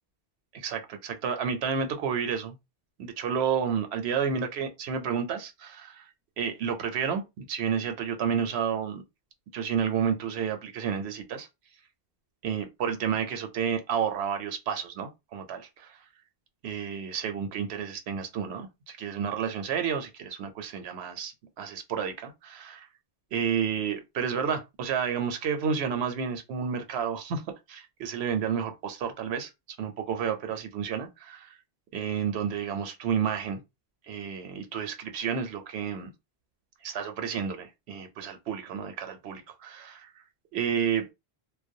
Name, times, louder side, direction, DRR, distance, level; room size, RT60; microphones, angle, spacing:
voice 1, 0.5-2.6 3.0-6.1 6.4-9.0 9.5-11.5 12.4-16.0 16.6-22.9 23.3-27.4 27.7-29.5 29.8-31.6 31.9-33.6 34.1-36.1 36.8-40.1 40.5-41.1, right 7 dB, 90° right, 0.8 m, -31 dB
2.3 x 2.1 x 2.6 m
omnidirectional pair, 1.1 m